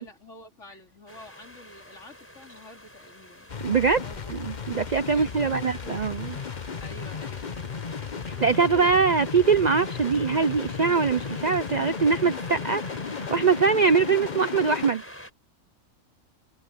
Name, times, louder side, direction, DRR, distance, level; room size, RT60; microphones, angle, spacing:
voice 1, 0.0-3.5 4.0-4.3 5.1-5.7 6.8-7.6 8.3-9.0, left 1 dB, 55° left, 3.7 m, -48 dB
sound 1, 1.1-15.3, equal, 10° left, 5.1 m, -46 dB
sound 2, 3.5-14.9, left 5 dB, 35° left, 0.9 m, -34 dB
voice 2, 3.6-4.0 4.3-6.4 8.3-12.8 13.3-15.0, right 5 dB, 50° right, 0.5 m, -23 dB
omnidirectional pair, 1.5 m